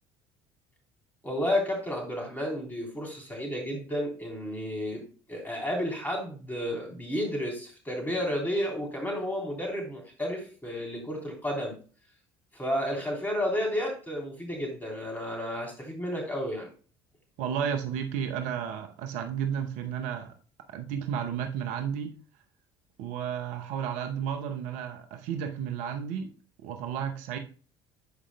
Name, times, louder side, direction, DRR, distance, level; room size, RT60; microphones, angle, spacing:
voice 1, 1.2-11.7 12.5-16.7, equal, 10° left, 3.4 m, -32 dB
voice 2, 17.4-20.3 20.7-22.1 23.0-26.3 26.6-27.4, right 8 dB, 65° right, 0.7 m, -32 dB
11.5 x 5.0 x 2.2 m
figure-of-eight pair, 60°, 14 cm